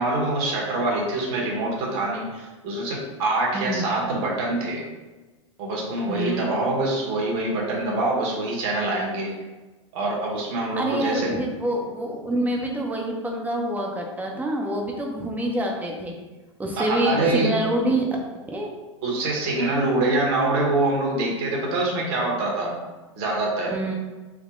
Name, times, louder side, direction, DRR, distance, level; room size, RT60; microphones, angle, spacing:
voice 1, 0.0-4.8 5.6-9.3 9.9-11.4 16.8-17.5 19.0-22.7 23.2-23.7, right 2 dB, 50° right, -2 dB, 1.3 m, -25 dB
voice 2, 3.5-3.9 6.1-6.5 10.7-16.2 16.6-18.0 18.5-18.7 23.7-23.9, right 1 dB, 10° right, 0 dB, 0.7 m, -26 dB
3.6 x 2.2 x 3.7 m, 1.2 s
hypercardioid pair, 110°, 17 cm